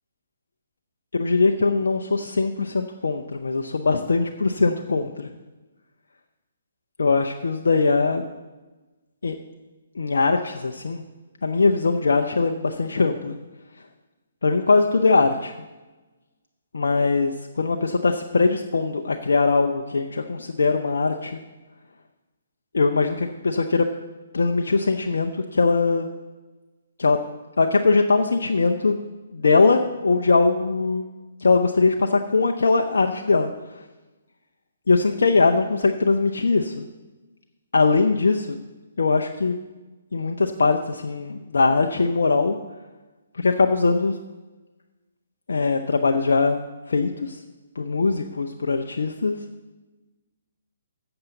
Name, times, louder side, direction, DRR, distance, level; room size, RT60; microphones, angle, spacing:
voice 1, 1.1-5.3 7.0-8.2 9.2-9.4 10.0-11.0 11.4-13.4 14.4-15.5 16.7-21.4 22.7-23.9 24.3-26.1 27.0-27.2 27.6-29.0 29.3-31.0 31.4-33.5 34.9-36.9 37.7-38.6 39.0-39.6 40.1-42.6 43.3-44.2 45.5-46.6 46.9-47.4 47.8-49.4, left 4 dB, 65° left, 4 dB, 0.6 m, -21 dB
14.5 x 7.9 x 4.0 m, 1.2 s
figure-of-eight pair, 130°, 0 cm